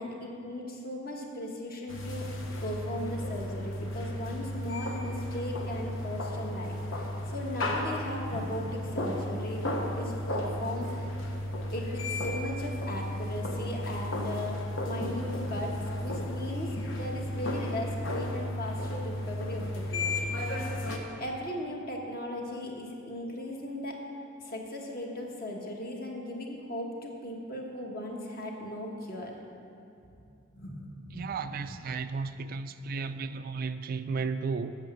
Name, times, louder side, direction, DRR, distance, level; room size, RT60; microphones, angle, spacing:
voice 1, 0.0-9.7 9.9-11.1 11.7-15.7 16.0-20.6 21.2-24.0 24.4-29.3 30.5-31.2 31.6-31.7, left 1 dB, 50° left, 1.3 m, -37 dB
sound 1, 1.9-21.0, left 1 dB, 75° left, 1.0 m, -34 dB
voice 2, 31.1-34.7, right 4 dB, 45° right, 0.3 m, -34 dB
8.2 x 6.7 x 7.2 m
head